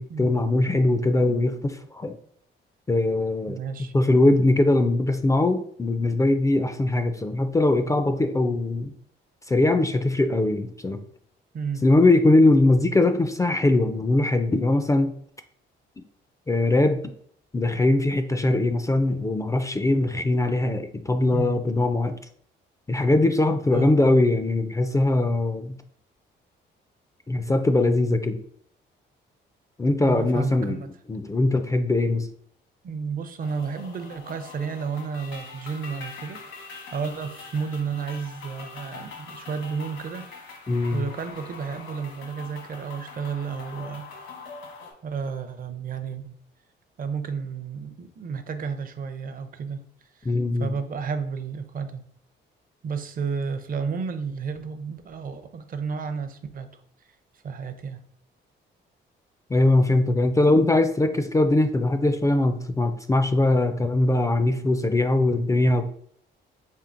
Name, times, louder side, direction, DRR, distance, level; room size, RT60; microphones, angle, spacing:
voice 1, 0.0-2.1 2.9-3.6 3.9-8.9 9.5-11.0 11.8-15.1 16.5-17.0 17.5-22.2 22.9-25.8 27.3-28.4 29.8-30.8 31.1-32.3 40.7-41.0 50.3-50.7 59.5-65.8, left 2 dB, 15° left, 8 dB, 0.3 m, -21 dB
voice 2, 3.5-3.9 11.5-11.8 21.3-21.7 23.7-23.9 30.0-30.9 32.8-40.3 40.9-44.0 45.0-46.3 47.0-49.8 50.2-50.3 50.6-52.0 52.8-56.7 57.4-58.0, right 5 dB, 45° right, 9 dB, 0.6 m, -32 dB
sound 1, 33.4-44.9, left 4 dB, 75° left, 1.2 m, -43 dB
4.4 x 3.3 x 2.5 m, 0.62 s
cardioid pair, 90°, 20 cm